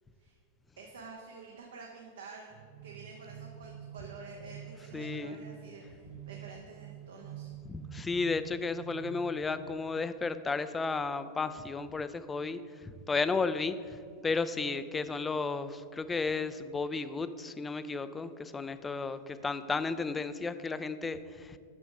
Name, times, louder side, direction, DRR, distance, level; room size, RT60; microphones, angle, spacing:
voice 1, 0.8-7.5 19.4-19.5, right 4 dB, 65° right, 0 dB, 0.7 m, -49 dB
sound 1, 2.5-10.4, right 11 dB, 25° right, 0.6 m, -48 dB
voice 2, 4.9-5.4 7.6-21.6, left 4 dB, 15° left, 12 dB, 0.3 m, -33 dB
6.1 x 6.1 x 5.0 m, 2.3 s
figure-of-eight pair, 90°, 0 cm